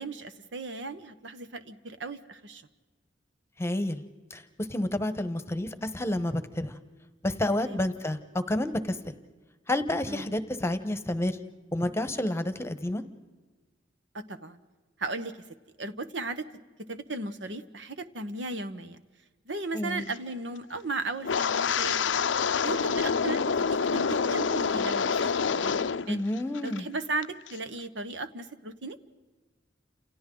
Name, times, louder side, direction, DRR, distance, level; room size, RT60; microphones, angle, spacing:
voice 1, 0.0-2.6 7.5-7.8 10.1-10.3 14.1-14.6 15.0-15.4 15.8-16.5 16.9-19.0 19.5-22.0 22.6-26.2 26.6-29.0, right 2 dB, 70° right, 11 dB, 1.2 m, -36 dB
voice 2, 3.6-4.0 4.3-4.4 4.7-6.8 7.2-8.2 8.5-9.1 9.7-11.4 11.7-13.0 19.7-20.0 26.1-26.8, left 1 dB, 15° left, 10 dB, 1.1 m, -29 dB
Wind, 21.2-26.1 26.4-26.8 27.2-27.5, left 6 dB, 85° left, 0.6 m, -27 dB
30.0 x 28.0 x 3.9 m, 1.3 s
head